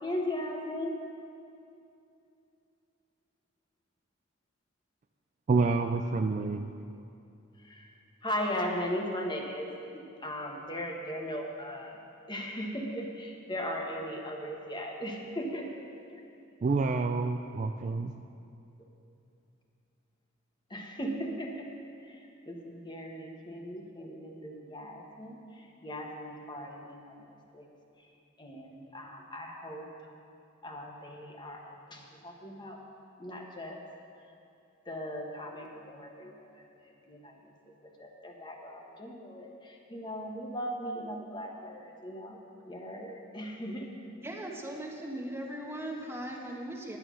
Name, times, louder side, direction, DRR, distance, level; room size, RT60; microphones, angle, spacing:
voice 1, 0.0-0.9 7.6-7.9 8.2-12.0 12.3-16.2 20.7-21.7 22.0-27.7 28.4-29.9 30.6-32.8 33.2-33.8 34.9-36.5 36.8-37.4 37.7-42.4 42.7-44.1, equal, 20° left, 1 dB, 1.2 m, -38 dB
voice 2, 5.5-6.7 16.6-18.2, right 4 dB, 35° right, 7 dB, 0.3 m, -28 dB
voice 3, 44.2-47.0, right 1 dB, 10° right, 0 dB, 1.2 m, -38 dB
10.5 x 9.2 x 6.2 m, 2.6 s
head